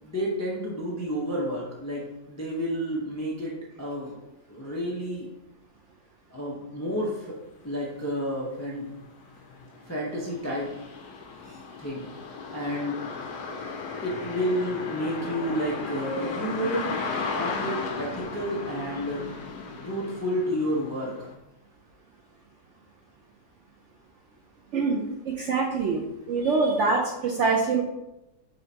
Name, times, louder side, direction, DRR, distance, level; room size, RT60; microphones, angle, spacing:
voice 1, 0.0-4.2 4.5-5.3 6.3-7.4 7.6-8.9 9.9-10.7 11.8-12.1 12.5-13.0 14.0-16.9 17.4-19.3 19.8-21.3, equal, 20° left, -4 dB, 0.4 m, -30 dB
sound 1, 7.9-8.0 8.5-21.3, left 4 dB, 85° left, 1.3 m, -36 dB
voice 2, 25.3-27.8, right 4 dB, 70° right, -1 dB, 0.7 m, -24 dB
5.6 x 3.3 x 2.8 m, 0.92 s
omnidirectional pair, 1.7 m